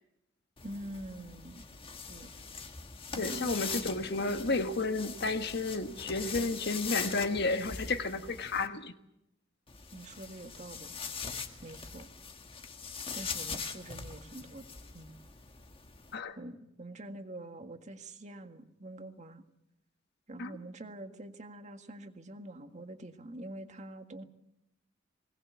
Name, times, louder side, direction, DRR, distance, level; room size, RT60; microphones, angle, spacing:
sound 1, 0.6-8.7 9.7-16.1, left 5 dB, 30° left, 1.5 m, -42 dB
voice 1, 0.6-1.7 2.1-2.3 3.1-3.7 9.9-11.0 11.6-12.1 13.1-14.6 14.9-15.2 16.4-19.4 20.3-24.2, right 1 dB, 35° right, 7 dB, 1.8 m, -45 dB
voice 2, 3.2-8.9 16.1-16.4 20.4-20.5, left 3 dB, 55° left, 8 dB, 1.4 m, -32 dB
21.5 x 19.0 x 8.2 m, 0.84 s
head